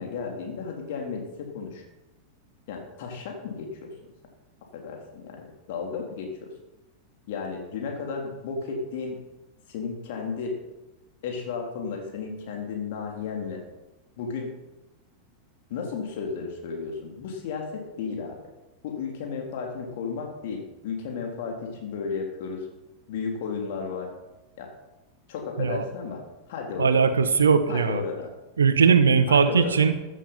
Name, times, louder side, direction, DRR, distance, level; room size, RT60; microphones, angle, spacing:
voice 1, 0.0-1.8 2.7-3.9 4.7-6.5 7.3-9.2 9.7-10.6 11.2-13.6 14.2-14.5 15.7-18.4 18.8-22.7 23.1-24.1 24.6-24.7 25.3-26.2 26.5-27.1 27.7-28.3 29.3-29.7, left 5 dB, 50° left, 2 dB, 3.7 m, -33 dB
voice 2, 26.8-28.0 28.6-29.9, right 6 dB, 70° right, 11 dB, 1.2 m, -19 dB
14.5 x 11.5 x 5.8 m, 1.0 s
figure-of-eight pair, 90°, 0 cm